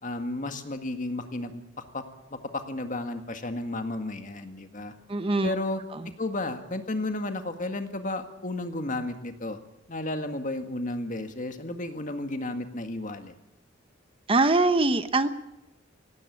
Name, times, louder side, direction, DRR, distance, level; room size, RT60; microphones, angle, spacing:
voice 1, 0.0-1.6 1.9-2.0 2.3-4.9 5.4-5.8 6.2-9.6 9.9-13.4, left 2 dB, 45° left, 7 dB, 1.9 m, -33 dB
voice 2, 5.1-5.5 14.3-15.3, right 3 dB, 30° right, 11 dB, 0.9 m, -22 dB
18.5 x 17.5 x 8.6 m, 0.88 s
head